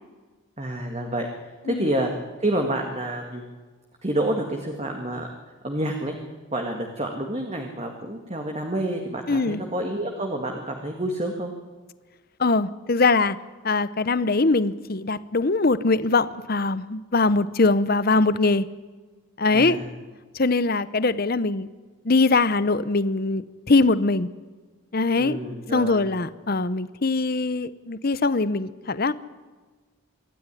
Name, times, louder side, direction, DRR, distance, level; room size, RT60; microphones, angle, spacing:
voice 1, 0.6-1.3 1.7-2.1 2.4-3.4 4.0-5.3 5.6-6.2 6.5-11.5 19.5-19.8 25.2-26.1, right 1 dB, 30° right, 3 dB, 1.9 m, -28 dB
voice 2, 9.3-9.6 12.4-13.4 13.6-18.7 19.4-19.8 20.3-21.7 22.0-24.3 24.9-25.4 25.7-29.1, left 3 dB, 45° left, 15 dB, 0.8 m, -22 dB
25.0 x 13.5 x 10.0 m, 1.4 s
head